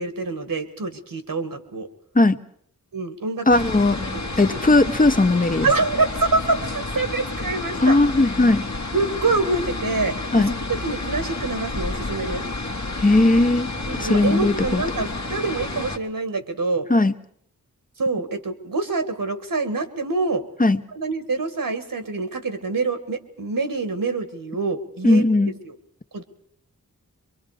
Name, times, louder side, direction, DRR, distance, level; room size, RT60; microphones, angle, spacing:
voice 1, 0.0-1.9 2.9-3.5 4.1-4.3 5.6-8.0 8.9-10.2 10.7-12.4 13.8-16.9 18.0-20.4 20.9-25.2 25.6-25.8 26.1-26.2, right 3 dB, 75° right, 8 dB, 1.9 m, -26 dB
sound 1, 3.5-16.0, left 2 dB, 50° left, 1.6 m, -30 dB
voice 2, 3.5-5.7 7.8-8.7 10.3-10.6 13.0-14.8 16.9-17.1 20.6-20.8 25.0-25.5, left 2 dB, 25° left, 12 dB, 0.9 m, -18 dB
24.0 x 23.0 x 5.0 m, 0.67 s
cardioid pair, 45°, 34 cm